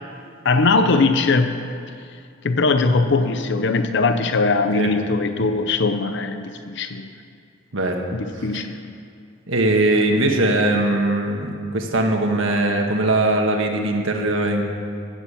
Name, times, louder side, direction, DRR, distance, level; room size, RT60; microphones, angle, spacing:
voice 1, 0.4-1.6 2.4-7.1 8.1-8.8, left 3 dB, 60° left, 8 dB, 0.7 m, -20 dB
voice 2, 9.5-14.6, right 2 dB, 80° right, 2 dB, 1.5 m, -20 dB
16.5 x 7.3 x 7.3 m, 2.3 s
head